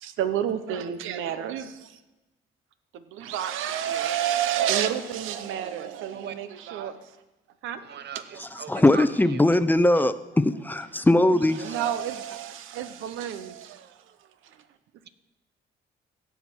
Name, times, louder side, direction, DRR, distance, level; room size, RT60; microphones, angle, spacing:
voice 1, 0.0-2.0 2.9-7.2 7.6-7.8 11.6-14.1 14.4-14.6, right 10 dB, 90° right, 11 dB, 0.8 m, -30 dB
voice 2, 7.8-9.0, right 9 dB, 60° right, 13 dB, 0.7 m, -39 dB
voice 3, 8.4-11.7, left 1 dB, 10° left, 12 dB, 0.5 m, -21 dB
16.5 x 5.8 x 4.5 m, 1.0 s
cardioid pair, 90°, 20 cm